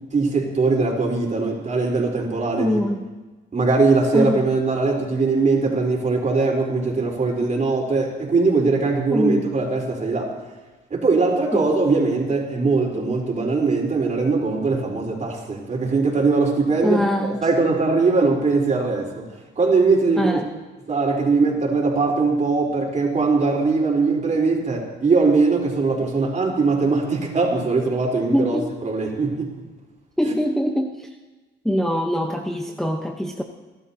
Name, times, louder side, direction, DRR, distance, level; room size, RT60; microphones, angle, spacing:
voice 1, 0.1-2.8 3.5-10.3 10.9-19.2 19.6-20.4 20.9-29.5 30.2-30.3, right 3 dB, 40° right, -1 dB, 4.0 m, -21 dB
voice 2, 2.6-3.0 4.1-4.5 9.1-9.5 11.5-11.7 16.8-17.5 20.2-20.5 28.3-28.7 30.2-31.1 31.6-33.4, equal, ahead, 2 dB, 0.9 m, -23 dB
29.5 x 12.0 x 2.8 m, 1.2 s
cardioid pair, 90°, 20 cm